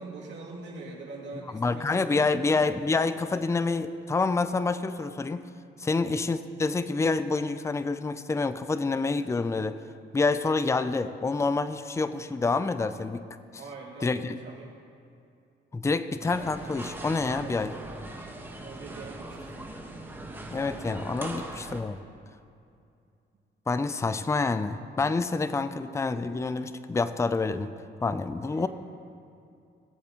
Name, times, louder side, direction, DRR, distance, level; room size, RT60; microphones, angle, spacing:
voice 1, 0.0-2.5 5.8-6.0 13.6-14.7 17.4-17.6 18.6-19.7 28.5-28.7, right 3 dB, 65° right, -4 dB, 2.6 m, -43 dB
voice 2, 1.5-5.5 5.8-9.8 10.1-13.3 14.0-14.4 15.7-17.7 20.5-22.0 23.7-27.7 28.0-28.7, left 3 dB, 15° left, 12 dB, 0.4 m, -27 dB
sound 1, 16.2-21.8, right 1 dB, 10° right, 1.5 m, -40 dB
21.0 x 7.7 x 3.1 m, 2.5 s
cardioid pair, 90°, 20 cm